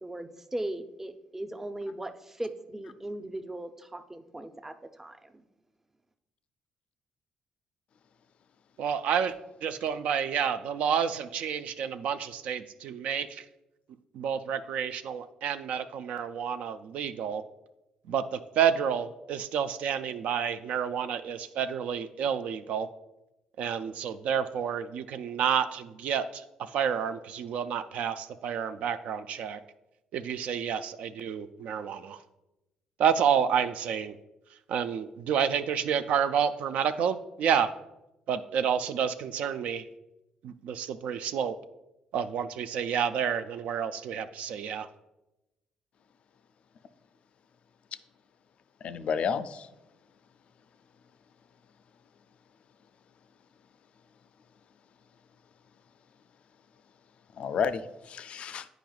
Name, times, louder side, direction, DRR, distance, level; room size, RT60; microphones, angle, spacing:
voice 1, 0.0-5.4, right 1 dB, 15° right, 8 dB, 0.5 m, -38 dB
voice 2, 8.8-9.3 9.6-13.4 14.1-17.4 18.1-22.9 23.6-29.6 30.1-32.2 33.0-34.1 34.7-37.7 38.3-39.8 40.4-41.5 42.1-44.9, right 8 dB, 70° right, 11 dB, 0.3 m, -29 dB
voice 3, 48.8-49.7 57.4-58.7, left 6 dB, 55° left, 13 dB, 0.4 m, -31 dB
9.1 x 4.9 x 2.3 m, 0.96 s
cardioid pair, 85°, 2 cm